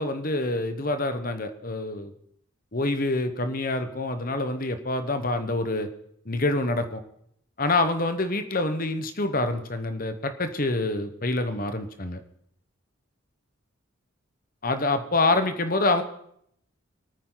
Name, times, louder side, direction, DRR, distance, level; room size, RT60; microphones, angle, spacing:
voice 1, 0.0-2.1 2.7-5.9 6.2-7.0 7.6-12.2 14.6-16.0, left 2 dB, 40° left, 9 dB, 1.2 m, -26 dB
25.5 x 9.3 x 4.0 m, 0.71 s
head